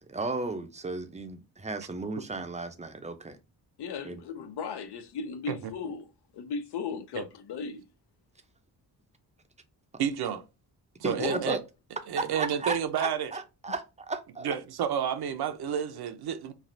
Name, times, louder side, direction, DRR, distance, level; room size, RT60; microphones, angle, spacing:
voice 1, 0.1-3.4 4.0-4.2 11.0-11.6 12.2-14.6, right 3 dB, 20° right, 0.5 m, -34 dB
voice 2, 3.8-7.8 11.2-11.4, left 5 dB, 75° left, 0.6 m, -36 dB
voice 3, 10.0-10.4 11.0-11.6 12.1-13.3 14.4-16.5, right 8 dB, 70° right, 0.6 m, -30 dB
3.2 x 2.4 x 2.5 m
cardioid pair, 95°, 40 cm